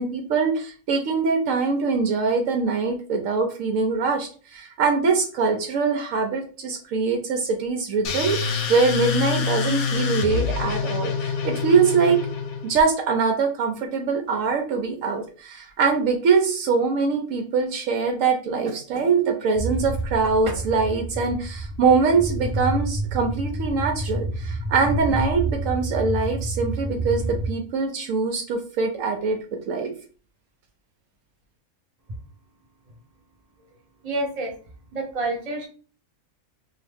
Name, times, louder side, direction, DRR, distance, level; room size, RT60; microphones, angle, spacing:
voice 1, 0.0-12.2 12.6-29.4 29.7-29.9, right 4 dB, 75° right, 3 dB, 0.9 m, -23 dB
sound 1, 8.0-12.8, left 6 dB, 65° left, 0.9 m, -26 dB
sound 2, 19.5-27.5, right 1 dB, 10° left, 0.6 m, -29 dB
voice 2, 34.0-34.5 34.9-35.7, right 2 dB, 30° right, 0 dB, 0.9 m, -28 dB
2.8 x 2.5 x 3.4 m, 0.40 s
omnidirectional pair, 1.4 m